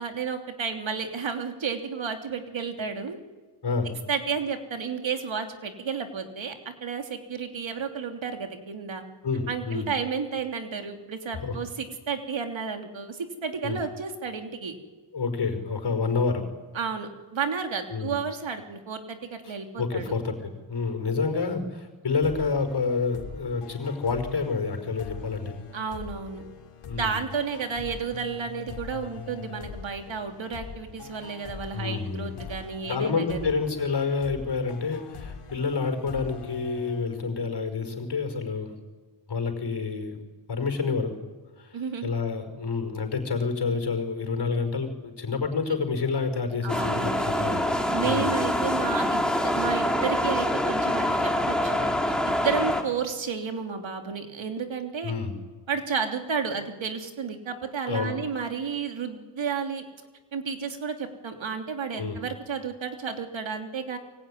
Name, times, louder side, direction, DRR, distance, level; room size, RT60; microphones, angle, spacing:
voice 1, 0.0-3.2 4.1-9.0 9.5-14.8 16.7-20.2 25.7-26.4 27.0-33.5 41.7-42.1 46.6-47.6 47.9-49.2 49.5-51.9 52.2-55.1 55.7-59.8 60.3-64.0, right 6 dB, 65° right, 5 dB, 3.2 m, -32 dB
voice 2, 9.2-9.9 11.4-11.6 13.6-13.8 15.1-16.4 17.9-18.1 19.4-25.6 26.9-27.2 31.7-32.5 32.9-38.7 39.3-40.2 40.5-41.1 41.6-47.6 48.0-48.3 55.0-55.3 57.8-58.1 61.9-62.2, left 4 dB, 50° left, 8 dB, 5.0 m, -28 dB
sound 1, 22.2-37.7, left 5 dB, 85° left, 3.3 m, -42 dB
sound 2, 46.7-52.8, left 1 dB, ahead, 3.7 m, -25 dB
25.0 x 23.5 x 10.0 m, 1.3 s
wide cardioid pair, 100°, 50 cm